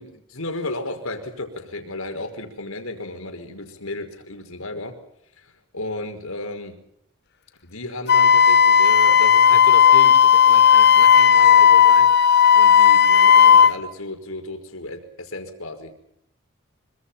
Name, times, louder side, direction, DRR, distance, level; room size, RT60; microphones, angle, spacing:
voice 1, 0.0-4.9 5.4-6.7 7.6-15.9, left 2 dB, 80° left, 6 dB, 5.2 m, -34 dB
Wind instrument woodwind instrument, 8.1-13.7, left 8 dB, 50° left, 1.1 m, -13 dB
26.0 x 25.0 x 5.8 m, 0.74 s
head